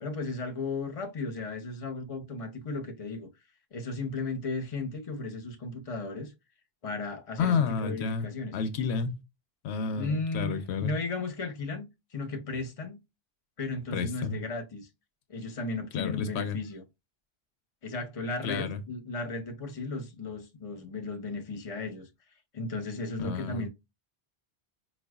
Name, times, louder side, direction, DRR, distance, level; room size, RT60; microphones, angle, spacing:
voice 1, 0.0-3.3 3.7-6.3 6.8-8.6 10.0-13.0 13.6-14.9 15.3-16.8 17.8-22.1 22.5-23.7, left 3 dB, 35° left, 0.8 m, -35 dB
voice 2, 7.4-8.3 8.5-9.2 9.6-10.9 13.9-14.4 15.9-16.6 18.4-18.8 23.2-23.7, left 5 dB, 90° left, 0.9 m, -30 dB
4.7 x 2.3 x 2.3 m
omnidirectional pair, 1.1 m